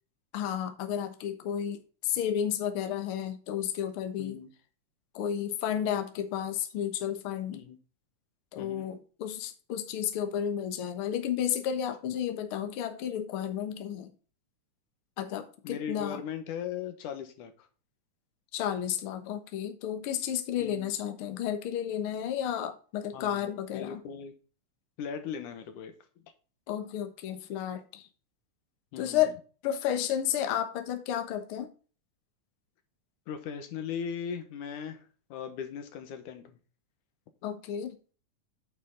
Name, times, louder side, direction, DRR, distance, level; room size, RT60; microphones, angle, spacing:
voice 1, 0.3-4.4 5.1-7.6 8.5-14.1 15.2-16.2 18.5-24.0 26.7-28.1 29.0-29.3 29.6-31.7 37.4-38.0, left 10 dB, 55° left, 1.7 m, -32 dB
voice 2, 4.2-4.5 7.5-7.8 8.6-8.9 15.6-17.7 20.6-20.9 23.1-24.3 25.0-26.0 28.9-29.3 33.3-35.0 35.3-36.6, left 7 dB, 90° left, 2.8 m, -38 dB
9.0 x 6.0 x 3.9 m
omnidirectional pair, 3.5 m